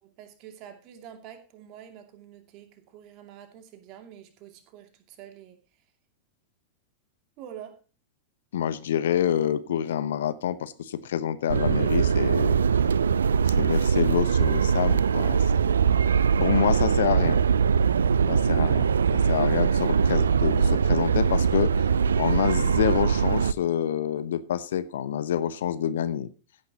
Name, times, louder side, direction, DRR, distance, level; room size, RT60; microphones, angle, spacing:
voice 1, 0.0-5.6 7.4-7.8, right 10 dB, 40° right, 6 dB, 2.5 m, -46 dB
voice 2, 8.5-12.6 13.5-16.0 16.4-17.4 18.3-21.7 22.2-26.3, left 9 dB, 60° left, 15 dB, 0.9 m, -27 dB
sound 1, 11.5-23.5, right 6 dB, 70° right, 0.4 m, -22 dB
16.0 x 9.6 x 2.9 m, 0.34 s
figure-of-eight pair, 90°, 0 cm